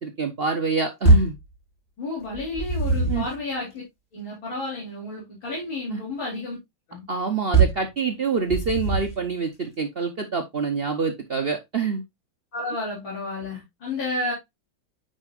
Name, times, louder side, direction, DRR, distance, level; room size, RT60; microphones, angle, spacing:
voice 1, 0.0-1.4 3.1-3.3 5.9-6.0 7.1-12.0, right 5 dB, 70° right, 0.5 m, -26 dB
sound 1, 1.0-1.4 2.3-3.4 7.5-7.9 8.5-9.2, right 3 dB, 20° left, 5.6 m, -20 dB
voice 2, 2.0-3.7 4.1-6.6 6.9-7.0 12.5-14.3, left 2 dB, 70° left, 4.2 m, -31 dB
9.2 x 5.4 x 2.4 m
omnidirectional pair, 2.2 m